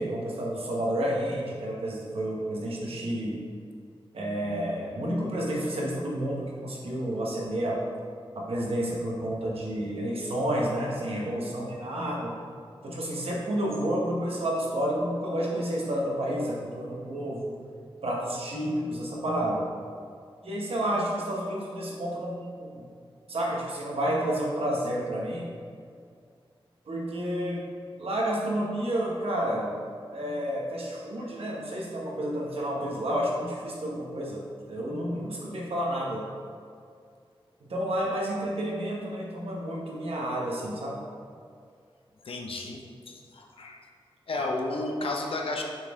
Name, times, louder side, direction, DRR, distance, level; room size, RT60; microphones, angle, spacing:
voice 1, 0.0-3.4 4.1-7.8 8.4-12.3 12.8-17.6 18.0-19.7 20.4-22.8 23.3-25.5 26.9-27.7 28.0-29.7 30.1-34.4 34.7-36.3 37.6-41.0 44.3-44.5, right 1 dB, 80° right, -3 dB, 1.2 m, -30 dB
voice 2, 42.2-43.8 44.3-45.6, left 2 dB, 70° left, 1 dB, 0.7 m, -33 dB
6.6 x 4.1 x 3.6 m, 2.3 s
wide cardioid pair, 115°, 10 cm